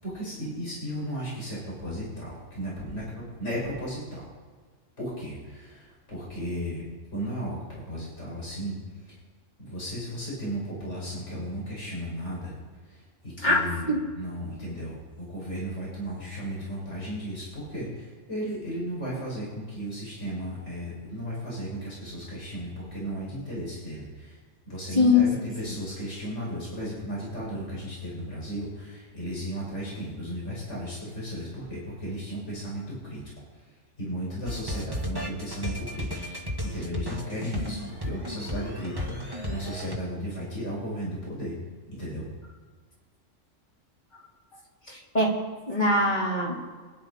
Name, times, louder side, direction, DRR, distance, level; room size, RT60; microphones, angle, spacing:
voice 1, 0.0-4.3 5.0-6.8 7.1-8.8 9.0-9.1 9.6-12.6 12.9-24.4 24.7-33.2 34.0-36.1 36.6-41.5 41.9-42.2, equal, 65° left, -6 dB, 6.1 m, -35 dB
voice 2, 13.4-14.1 25.0-25.3 44.9-45.4 45.7-46.6, left 2 dB, 35° left, -5 dB, 3.7 m, -22 dB
sound 1, 34.5-40.0, equal, 20° right, 1.8 m, -34 dB
25.5 x 11.0 x 4.2 m, 1.5 s
omnidirectional pair, 1.3 m